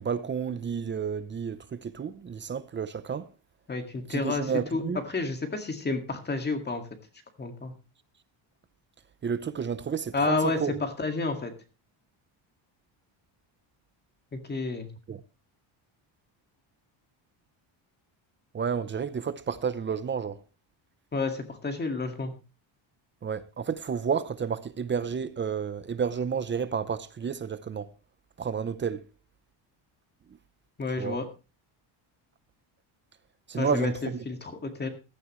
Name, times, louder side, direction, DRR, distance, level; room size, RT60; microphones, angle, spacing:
voice 1, 0.0-3.3 4.1-5.0 9.2-10.8 15.1-15.2 18.5-20.4 23.2-27.9 28.4-29.0 31.0-31.2 33.5-34.2, right 6 dB, 25° right, 0.6 m, -31 dB
voice 2, 3.7-6.8 7.4-7.7 10.1-11.5 14.3-14.9 21.1-22.3 30.8-31.3 33.5-34.9, left 3 dB, 20° left, 1.9 m, -30 dB
15.5 x 13.5 x 3.1 m
cardioid pair, 175°, 49 cm